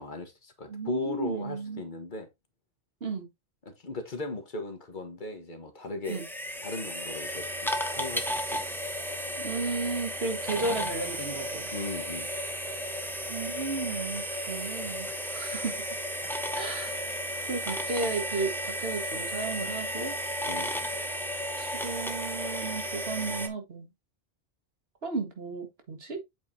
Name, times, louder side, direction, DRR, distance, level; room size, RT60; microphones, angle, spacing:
voice 1, 0.0-2.3 3.6-6.2 6.6-8.6 11.7-12.3 20.5-20.7, left 3 dB, 50° left, 1.4 m, -37 dB
voice 2, 0.7-1.8 3.0-3.3 6.1-6.2 9.4-11.7 13.3-15.8 16.5-17.0 17.4-20.2 21.6-23.9 25.0-26.2, right 3 dB, 75° right, 1.9 m, -34 dB
sound 1, 6.0-23.5, equal, ahead, 0.9 m, -34 dB
8.0 x 4.7 x 2.7 m
omnidirectional pair, 1.0 m